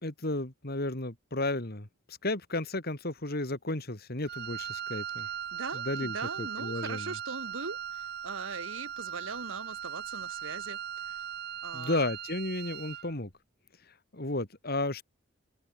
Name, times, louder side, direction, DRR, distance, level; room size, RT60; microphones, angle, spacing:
voice 1, 0.0-5.3 5.7-7.1 11.7-13.3 14.1-15.0, left 2 dB, 50° left, 3.1 m, -33 dB
Wind instrument woodwind instrument, 4.2-13.1, right 9 dB, 55° right, 0.9 m, -39 dB
voice 2, 5.5-10.8 11.0-11.3 11.6-12.1, right 4 dB, 90° right, 1.9 m, -40 dB
head